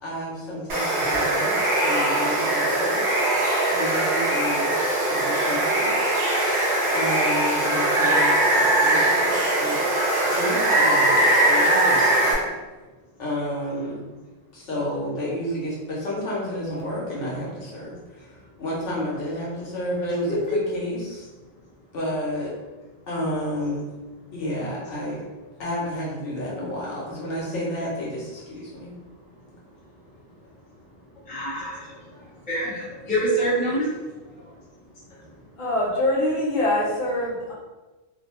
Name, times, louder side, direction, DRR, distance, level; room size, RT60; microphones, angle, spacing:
voice 1, 0.0-3.1 3.7-4.8 5.1-6.1 6.9-9.8 10.3-12.6 13.2-14.0 14.5-21.3 21.9-22.6 23.1-23.9 24.3-25.2 25.6-28.9 31.6-31.7 32.1-32.3 34.1-34.6, left 1 dB, 70° left, -5 dB, 1.1 m, -31 dB
Water, 0.7-12.3, right 1 dB, 50° right, 0.5 m, -21 dB
voice 2, 31.3-31.9 32.5-33.9, right 1 dB, 10° left, -9 dB, 0.6 m, -25 dB
voice 3, 35.6-37.5, left 1 dB, 45° left, -5 dB, 0.8 m, -23 dB
2.6 x 2.0 x 2.9 m, 1.2 s
omnidirectional pair, 1.3 m